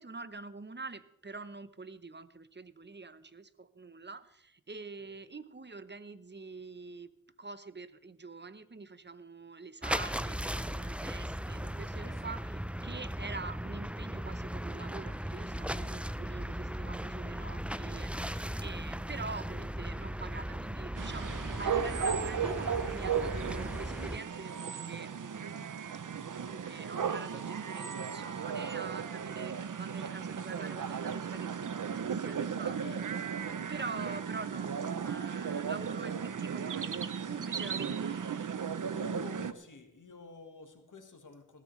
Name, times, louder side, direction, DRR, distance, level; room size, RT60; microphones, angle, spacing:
voice 1, 0.0-7.1 7.4-25.8 26.3-33.0 33.6-37.0 37.3-38.2, right 4 dB, 35° right, 13 dB, 0.8 m, -45 dB
sound 1, 9.8-24.2, equal, 5° right, 0.5 m, -37 dB
sound 2, 21.0-39.5, right 7 dB, 75° right, 0.6 m, -35 dB
voice 2, 35.6-36.3 38.9-41.6, left 3 dB, 70° left, 6 dB, 1.6 m, -50 dB
19.5 x 13.5 x 3.2 m, 0.80 s
wide cardioid pair, 45°, 32 cm